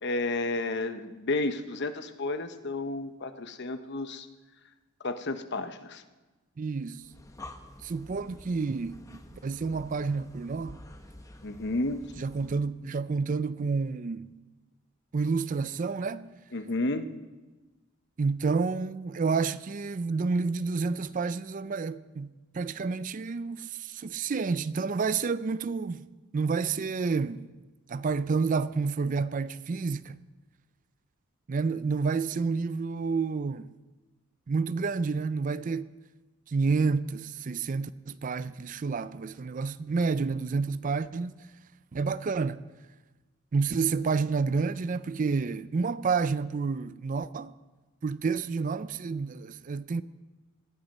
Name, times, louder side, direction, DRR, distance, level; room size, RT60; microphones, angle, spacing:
voice 1, 0.0-4.3 5.0-6.0 11.4-12.0 16.5-17.1, left 2 dB, 55° left, 0.9 m, -31 dB
voice 2, 6.6-7.0 7.8-10.8 12.2-14.3 15.1-16.4 18.2-26.1 26.3-27.5 27.9-30.2 31.5-33.7 34.5-35.9 36.5-41.3 41.9-42.6 43.5-47.5 48.0-50.0, right 4 dB, 40° right, 0.4 m, -29 dB
Breathing, 7.0-12.8, left 1 dB, 15° left, 0.9 m, -49 dB
18.0 x 12.0 x 5.4 m
head